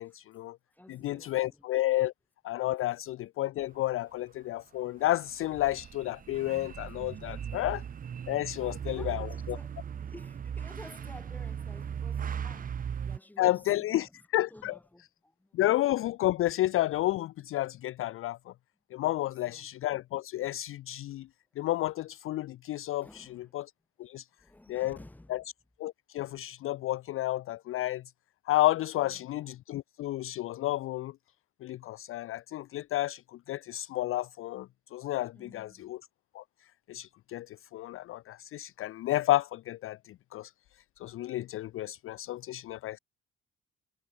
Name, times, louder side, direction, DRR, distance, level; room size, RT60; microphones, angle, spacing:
voice 1, 0.0-0.6 0.9-2.1 2.4-7.8 8.3-9.6 13.4-14.7 15.5-18.5 18.9-21.3 21.6-23.3 23.5-23.7 24.0-24.3 24.7-25.0 25.3-25.4 25.8-28.0 28.5-31.1 31.6-36.0 36.3-36.4 36.9-40.5 41.0-43.0, left 15 dB, 45° left, 0.4 m, -31 dB
voice 2, 0.7-1.7 7.2-7.7 8.6-15.6 19.2-19.7 22.8-23.5 24.4-25.5 29.0-29.5 35.3-36.0, left 1 dB, 5° left, 5.7 m, -53 dB
sound 1, 5.1-13.2, right 8 dB, 30° right, 0.8 m, -38 dB
cardioid pair, 175°, 30 cm